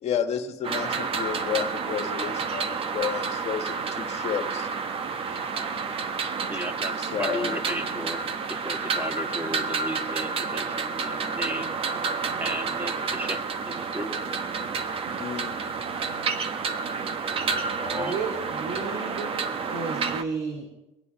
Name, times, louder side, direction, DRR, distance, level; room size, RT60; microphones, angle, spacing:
voice 1, 0.0-4.7 7.0-7.6 15.2-15.5, left 8 dB, 50° left, 6 dB, 1.5 m, -31 dB
sound 1, 0.6-20.2, right 5 dB, 45° right, 1.1 m, -30 dB
voice 2, 6.5-8.2 8.5-11.8 12.4-14.5 17.8-18.2, right 1 dB, 15° right, 6 dB, 2.0 m, -35 dB
voice 3, 17.9-19.4 19.7-20.7, right 4 dB, 75° right, 0 dB, 2.9 m, -33 dB
23.0 x 8.4 x 5.1 m, 0.99 s
supercardioid pair, 90°, 14 cm